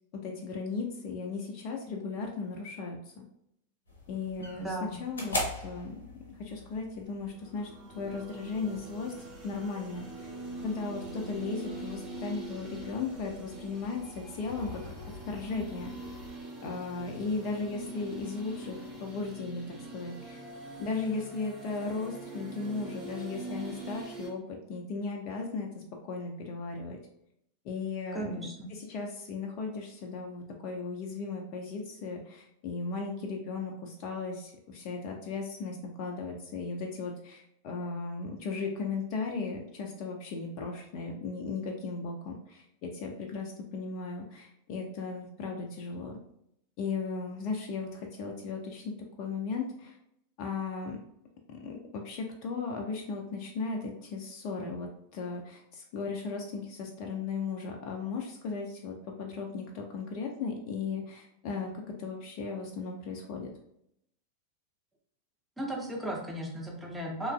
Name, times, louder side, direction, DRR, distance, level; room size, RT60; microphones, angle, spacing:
voice 1, 0.1-3.2 4.1-5.9 6.3-7.7 7.9-9.1 9.4-10.3 10.6-14.8 15.2-15.9 16.6-20.4 20.8-27.0 27.6-28.3 28.7-46.2 46.8-49.9 50.4-51.0 51.5-61.7 62.0-63.5, left 4 dB, 40° left, 1 dB, 0.4 m, -36 dB
sound 1, 3.9-16.3, left 1 dB, 70° left, 0.7 m, -43 dB
voice 2, 4.5-5.0 28.1-28.7 65.6-67.3, right 1 dB, 5° right, -2 dB, 0.6 m, -36 dB
sound 2, 7.4-24.3, right 2 dB, 35° right, 0.9 m, -43 dB
3.0 x 2.3 x 2.2 m, 0.77 s
figure-of-eight pair, 90°, 0 cm